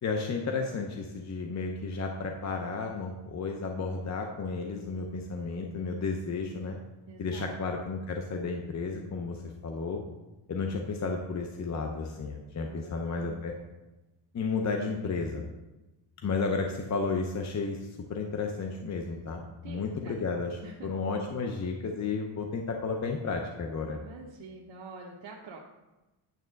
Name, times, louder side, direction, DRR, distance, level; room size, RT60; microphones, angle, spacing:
voice 1, 0.0-6.8 7.2-10.0 10.5-13.6 14.3-15.4 16.2-24.0, left 4 dB, 35° left, 3 dB, 0.7 m, -33 dB
voice 2, 7.1-7.6 12.7-13.4 19.6-20.2 20.6-20.9 23.9-25.6, right 3 dB, 65° right, -1 dB, 0.9 m, -47 dB
9.2 x 3.6 x 6.4 m, 1.1 s
cardioid pair, 120°, 46 cm